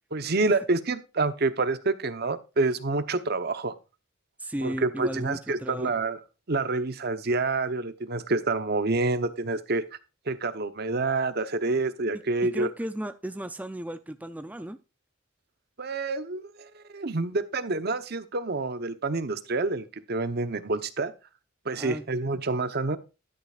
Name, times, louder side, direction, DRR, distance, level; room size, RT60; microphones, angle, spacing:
voice 1, 0.1-3.7 4.6-6.2 6.5-9.8 10.3-12.7 15.8-21.1 21.6-23.0, right 3 dB, 55° right, 12 dB, 0.9 m, -28 dB
voice 2, 4.4-5.9 12.5-14.8 21.8-22.0, right 1 dB, 10° right, 10 dB, 0.5 m, -35 dB
11.5 x 9.9 x 2.4 m, 0.29 s
head